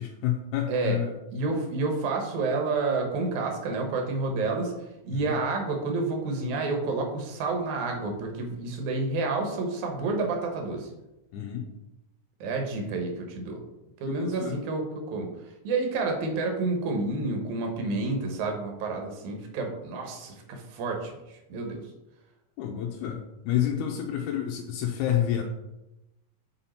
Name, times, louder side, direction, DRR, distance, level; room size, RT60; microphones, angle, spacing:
voice 1, 0.0-1.2 5.1-5.4 11.3-11.7 14.1-14.6 22.6-25.4, left 10 dB, 80° left, 1 dB, 2.0 m, -29 dB
voice 2, 0.7-1.0 1.3-4.7 5.0-10.9 12.4-13.6 14.0-15.3 15.6-21.8, right 3 dB, 70° right, 2 dB, 2.4 m, -29 dB
5.5 x 5.2 x 4.3 m, 0.97 s
omnidirectional pair, 3.8 m